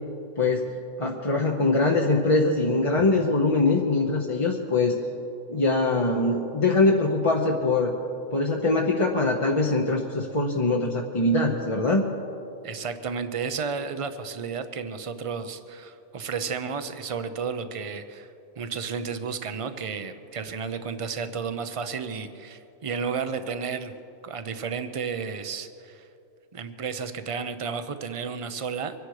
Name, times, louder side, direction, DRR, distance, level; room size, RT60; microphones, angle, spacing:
voice 1, 0.4-0.7 1.0-5.0 5.5-7.9 8.3-12.1, left 2 dB, 30° left, -1 dB, 0.9 m, -23 dB
voice 2, 12.6-18.3 18.6-23.9 24.2-26.1 26.5-28.9, right 5 dB, 30° right, 10 dB, 0.6 m, -32 dB
24.5 x 10.5 x 4.9 m, 2.7 s
omnidirectional pair, 1.4 m